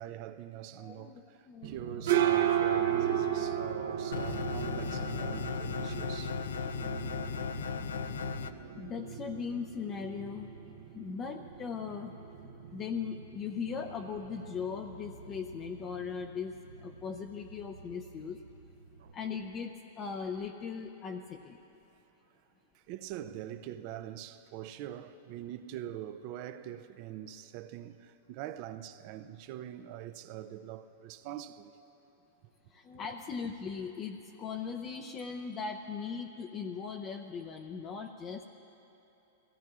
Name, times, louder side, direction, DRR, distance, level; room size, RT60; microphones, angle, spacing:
voice 1, 0.0-6.4 7.5-7.8 22.7-31.8, right 11 dB, 50° right, 0.5 m, -44 dB
voice 2, 0.8-1.2 1.5-2.0 8.5-10.5 10.9-12.1 12.7-18.4 19.1-21.6 32.7-38.4, left 6 dB, 30° left, 0.6 m, -39 dB
sound 1, 1.6-19.1, right 10 dB, 75° right, 0.8 m, -36 dB
sound 2, 4.1-8.5, left 6 dB, 85° left, 0.4 m, -36 dB
22.5 x 16.5 x 2.4 m
hypercardioid pair, 125°, 0 cm